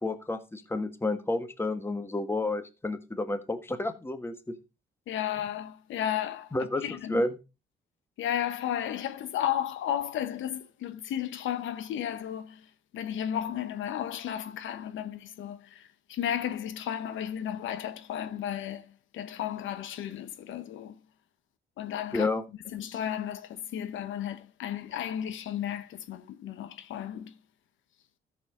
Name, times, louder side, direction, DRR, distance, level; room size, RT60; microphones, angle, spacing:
voice 1, 0.0-4.3 6.5-7.3 22.1-22.4, left 2 dB, 10° left, 1.4 m, -30 dB
voice 2, 5.1-6.5 6.8-7.2 8.2-12.7 12.9-20.9 21.8-22.3 22.7-27.3, left 10 dB, 80° left, 1.0 m, -33 dB
13.0 x 7.0 x 3.8 m
cardioid pair, 90°, 20 cm